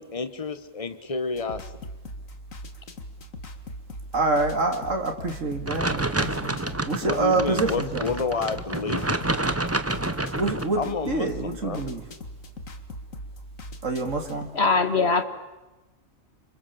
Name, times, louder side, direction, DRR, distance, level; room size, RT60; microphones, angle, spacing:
voice 1, 0.0-1.7 7.0-9.3 10.7-11.8, left 4 dB, 25° left, 11 dB, 1.5 m, -30 dB
sound 1, 1.4-14.5, equal, 90° left, 2.5 m, -40 dB
voice 2, 4.1-6.6 6.8-8.1 10.3-10.8 11.1-12.0 13.8-14.5, right 3 dB, 75° right, 4 dB, 3.0 m, -26 dB
sound 2, 5.7-10.7, right 2 dB, 10° right, 1.0 m, -28 dB
voice 3, 14.5-15.2, left 4 dB, 55° left, 9 dB, 2.3 m, -21 dB
29.5 x 27.0 x 7.2 m, 1.1 s
omnidirectional pair, 1.3 m